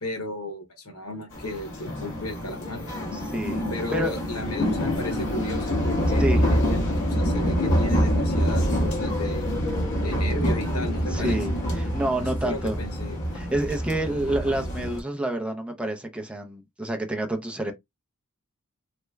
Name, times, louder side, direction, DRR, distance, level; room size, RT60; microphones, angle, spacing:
voice 1, 0.0-2.8 3.7-9.5 10.0-11.4 12.4-13.2, left 2 dB, 85° left, 1.2 m, -35 dB
sound 1, 1.3-15.0, equal, 55° left, 1.2 m, -26 dB
voice 2, 3.1-4.2 6.2-6.5 11.1-12.8 13.3-17.7, right 1 dB, 5° right, 0.5 m, -28 dB
3.2 x 2.1 x 3.3 m
head